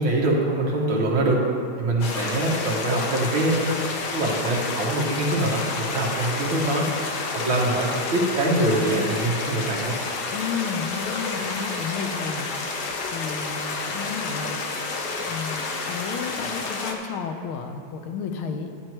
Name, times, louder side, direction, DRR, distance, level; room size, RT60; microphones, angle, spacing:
voice 1, 0.0-1.4 1.8-3.8 4.1-6.9 7.3-9.9, right 1 dB, 70° right, -3 dB, 2.2 m, -24 dB
sound 1, 2.0-16.9, left 3 dB, 60° left, 1.3 m, -30 dB
voice 2, 10.3-12.5 13.1-14.6 15.2-18.7, left 6 dB, 90° left, 6 dB, 1.6 m, -32 dB
12.5 x 9.3 x 3.0 m, 2.5 s
omnidirectional pair, 2.3 m